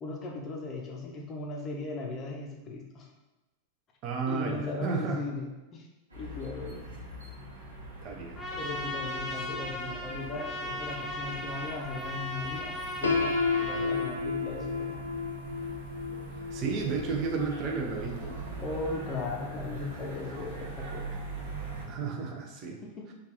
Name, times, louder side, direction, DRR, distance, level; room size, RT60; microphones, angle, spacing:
voice 1, 0.0-3.1 4.3-5.9 6.2-6.9 8.6-15.0 18.6-21.2 22.8-23.1, left 3 dB, 30° left, 0 dB, 0.6 m, -38 dB
voice 2, 4.0-5.2 8.0-8.7 16.5-18.3 21.9-22.8, right 5 dB, 40° right, 1 dB, 0.5 m, -33 dB
sound 1, 6.1-21.9, right 2 dB, 75° right, 0.9 m, -42 dB
Trumpet, 8.3-14.1, left 1 dB, 10° left, 0.9 m, -37 dB
Piano, 13.0-18.9, left 4 dB, 75° left, 0.3 m, -33 dB
3.3 x 2.4 x 3.3 m, 1.1 s
figure-of-eight pair, 90°, 0 cm